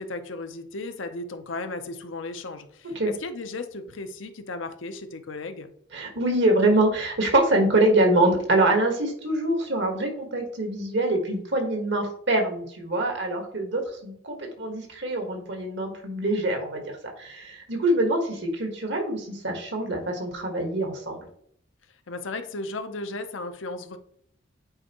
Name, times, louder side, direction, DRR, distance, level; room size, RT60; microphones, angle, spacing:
voice 1, 0.0-5.7 22.1-24.0, left 2 dB, 75° left, 8 dB, 0.7 m, -35 dB
voice 2, 5.9-21.3, right 1 dB, 65° right, 3 dB, 1.5 m, -24 dB
8.8 x 4.4 x 3.0 m, 0.65 s
head